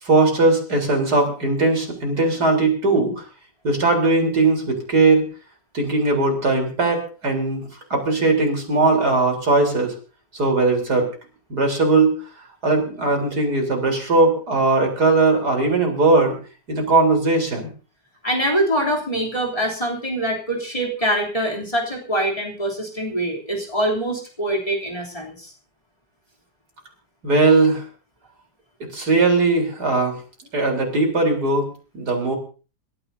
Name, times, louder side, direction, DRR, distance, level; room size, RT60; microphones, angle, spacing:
voice 1, 0.0-3.2 3.6-5.3 5.7-9.9 10.3-11.1 11.5-12.2 12.6-16.4 16.7-17.7 27.2-27.8 28.9-30.2 30.5-31.7 31.9-32.4, right 3 dB, 75° right, 2 dB, 4.4 m, -19 dB
voice 2, 18.2-25.5, right 1 dB, 20° left, -2 dB, 3.3 m, -24 dB
26.5 x 13.5 x 2.7 m, 0.36 s
omnidirectional pair, 1.7 m